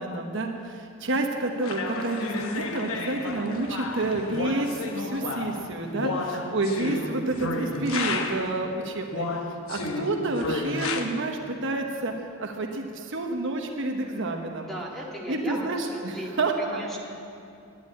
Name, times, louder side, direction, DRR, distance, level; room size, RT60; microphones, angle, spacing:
voice 1, 0.0-6.1 6.5-9.4 9.7-12.1 12.4-14.7 15.3-16.8, right 2 dB, 65° right, 2 dB, 1.1 m, -29 dB
sound 1, 1.6-8.6 9.1-11.0, left 3 dB, 90° left, 1.0 m, -32 dB
voice 2, 6.0-6.6 14.6-17.0, equal, ahead, -3 dB, 2.0 m, -38 dB
10.5 x 10.5 x 8.4 m, 2.6 s
head